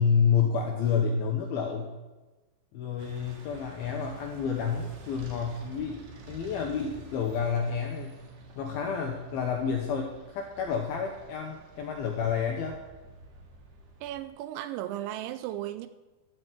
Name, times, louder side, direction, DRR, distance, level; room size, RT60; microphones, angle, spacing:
voice 1, 0.0-1.9 2.7-8.1 8.6-12.8, left 6 dB, 80° left, 2.2 m, -29 dB
sound 1, 3.0-14.3, right 2 dB, 65° right, 3.4 m, -50 dB
voice 2, 14.0-15.9, right 13 dB, 85° right, 2.7 m, -35 dB
13.0 x 5.5 x 7.7 m
omnidirectional pair, 5.5 m